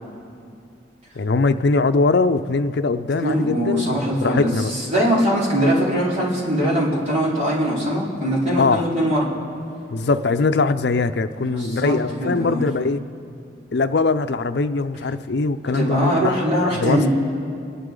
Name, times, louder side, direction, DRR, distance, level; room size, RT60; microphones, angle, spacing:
voice 1, 1.2-4.7 8.6-8.9 9.9-13.0 13.7-16.4 16.8-17.1, left 3 dB, 65° left, 10 dB, 0.5 m, -21 dB
voice 2, 3.2-9.3 11.5-12.7 15.7-17.1, equal, 40° right, -6 dB, 4.0 m, -21 dB
28.5 x 11.0 x 3.8 m, 2.5 s
head